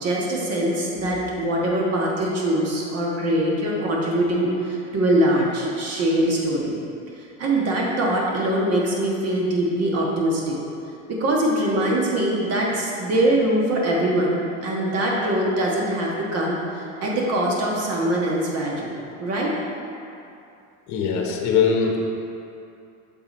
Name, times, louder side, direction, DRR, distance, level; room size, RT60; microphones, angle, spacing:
voice 1, 0.0-6.7 7.2-10.6 11.1-18.9 19.2-19.5, right 1 dB, 45° right, -3 dB, 1.4 m, -23 dB
voice 2, 20.9-22.1, left 6 dB, 50° left, 1 dB, 1.0 m, -21 dB
6.7 x 3.8 x 4.2 m, 2.6 s
supercardioid pair, 105°, 36 cm